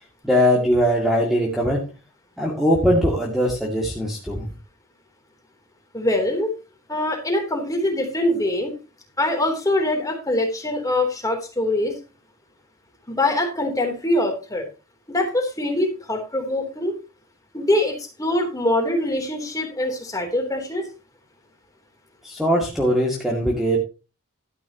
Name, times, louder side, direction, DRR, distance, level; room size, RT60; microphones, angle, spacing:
voice 1, 0.2-1.8 2.4-4.5 22.2-23.8, equal, ahead, -2 dB, 2.2 m, -20 dB
voice 2, 5.9-6.5 6.9-8.7 9.2-11.9 13.1-14.6 15.1-16.9 17.5-20.9, left 1 dB, 15° left, 3 dB, 3.2 m, -23 dB
12.5 x 10.5 x 2.9 m, 0.30 s
head